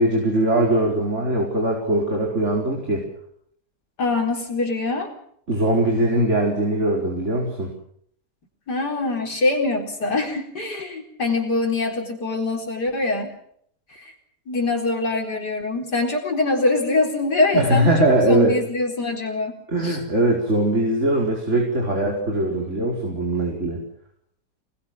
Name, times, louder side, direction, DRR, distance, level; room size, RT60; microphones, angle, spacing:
voice 1, 0.0-3.0 5.5-7.7 17.5-18.6 19.7-23.8, right 1 dB, 40° right, 0 dB, 5.1 m, -21 dB
voice 2, 4.0-5.1 8.7-13.3 13.9-14.1 14.5-20.0, left 2 dB, 70° left, 2 dB, 4.8 m, -24 dB
27.0 x 21.0 x 6.2 m, 0.67 s
omnidirectional pair, 1.9 m